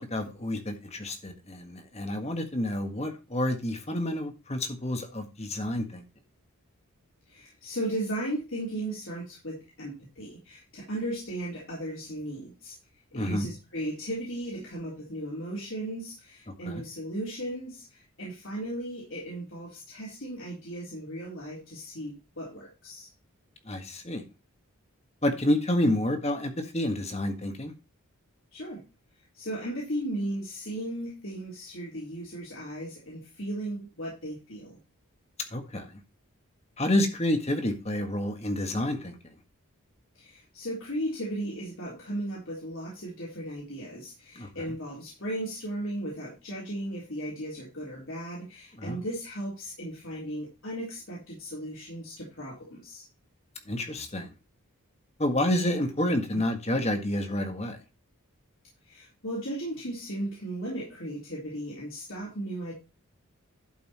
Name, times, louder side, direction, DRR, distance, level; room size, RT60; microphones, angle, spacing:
voice 1, 0.0-6.0 13.1-13.5 16.6-16.8 23.7-24.2 25.2-27.7 35.5-35.9 36.8-39.1 44.3-44.5 48.8-49.0 53.7-54.3 55.2-57.8, left 1 dB, 30° left, 1.6 m, -29 dB
voice 2, 7.3-12.7 13.1-23.1 28.5-28.8 29.3-34.8 40.2-53.0 56.3-56.4 58.9-62.7, right 1 dB, 60° left, 3.7 m, -36 dB
11.5 x 5.5 x 4.3 m
head